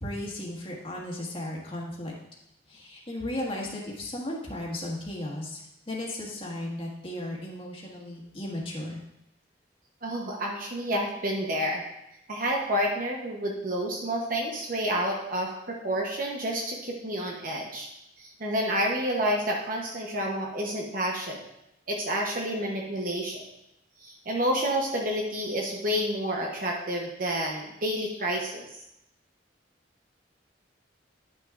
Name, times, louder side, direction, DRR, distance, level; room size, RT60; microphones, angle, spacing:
voice 1, 0.0-2.1 2.7-9.0, left 1 dB, 30° left, -3 dB, 1.6 m, -35 dB
voice 2, 10.0-11.8 12.3-17.9 18.2-21.4 21.9-23.4 24.0-28.6, equal, 50° right, 0 dB, 0.9 m, -29 dB
10.0 x 6.2 x 2.5 m, 0.85 s
head